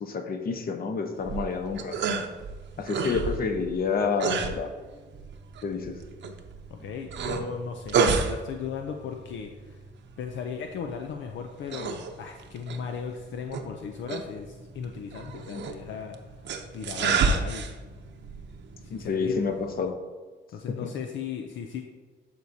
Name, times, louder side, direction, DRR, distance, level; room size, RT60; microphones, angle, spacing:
voice 1, 0.0-2.0 2.8-4.7 5.6-6.0 15.5-15.6 18.9-19.9 20.7-20.9, left 5 dB, 50° left, 6 dB, 1.0 m, -29 dB
sound 1, 1.2-19.9, right 5 dB, 65° right, 0.8 m, -32 dB
voice 2, 6.7-9.8 10.2-16.2 16.7-17.7 18.8-19.4 20.5-21.8, left 6 dB, 70° left, 3 dB, 0.6 m, -37 dB
12.0 x 4.6 x 2.8 m, 1.4 s
cardioid pair, 90°, 20 cm